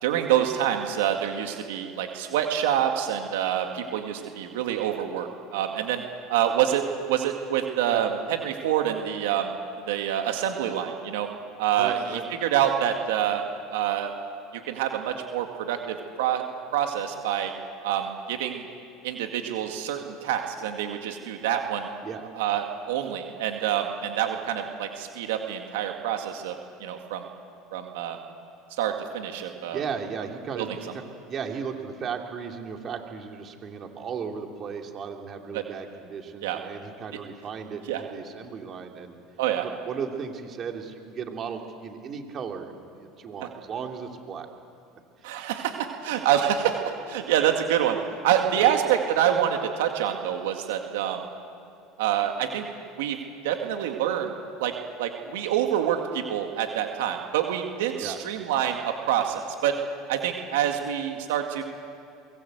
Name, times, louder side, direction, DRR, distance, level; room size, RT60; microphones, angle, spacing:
voice 1, 0.0-6.0 6.3-9.5 9.9-11.3 11.6-12.0 12.4-13.4 13.7-14.1 14.7-16.4 16.7-17.5 17.8-18.6 19.0-21.9 22.3-27.2 27.7-28.2 28.8-29.8 30.6-30.7 35.5-35.6 36.4-36.6 37.9-38.0 39.4-39.7 45.2-46.8 47.1-51.2 52.0-52.7 53.0-53.2 53.4-54.3 54.6-54.7 55.0-59.8 60.1-61.6, right 10 dB, 85° right, 4 dB, 2.1 m, -26 dB
voice 2, 11.8-12.2 22.0-22.2 29.7-31.0 31.3-39.1 39.6-44.5 45.2-45.3 48.6-48.7 58.0-58.2, right 6 dB, 40° right, 3 dB, 3.2 m, -36 dB
24.0 x 21.5 x 8.1 m, 2.6 s
supercardioid pair, 95°, 0 cm